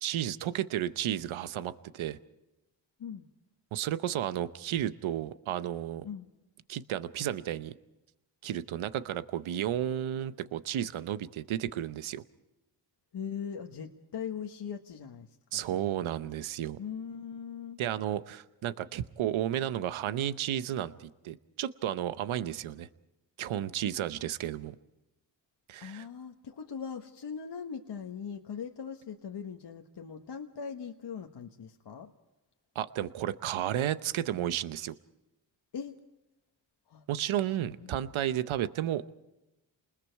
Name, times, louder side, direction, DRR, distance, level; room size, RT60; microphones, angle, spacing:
voice 1, 0.0-2.2 3.7-6.1 6.7-7.7 8.4-12.2 15.5-16.8 17.8-22.9 23.4-24.8 25.7-26.1 32.7-34.9 37.1-39.1, right 11 dB, 90° right, 14 dB, 0.9 m, -33 dB
voice 2, 13.1-15.9 16.8-17.8 25.8-32.1 35.7-35.9 36.9-37.0, left 7 dB, 60° left, 4 dB, 1.4 m, -40 dB
28.5 x 20.5 x 4.6 m, 0.99 s
cardioid pair, 55°, 47 cm